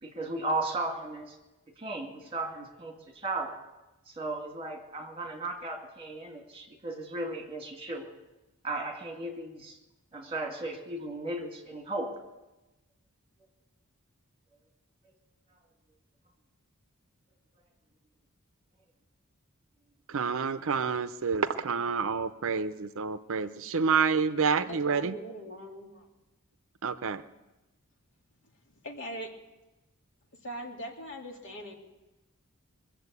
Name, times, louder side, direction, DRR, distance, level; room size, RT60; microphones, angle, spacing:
voice 1, 0.0-1.4 1.8-3.5 4.1-8.1 8.6-9.8 10.1-12.1, right 2 dB, 25° right, 2 dB, 2.3 m, -35 dB
voice 2, 20.1-25.2 26.8-27.2, right 5 dB, 65° right, 12 dB, 0.6 m, -28 dB
voice 3, 24.7-26.1 28.8-29.3 30.4-31.7, right 1 dB, 60° left, 0 dB, 2.4 m, -41 dB
22.5 x 7.5 x 8.2 m, 1.0 s
head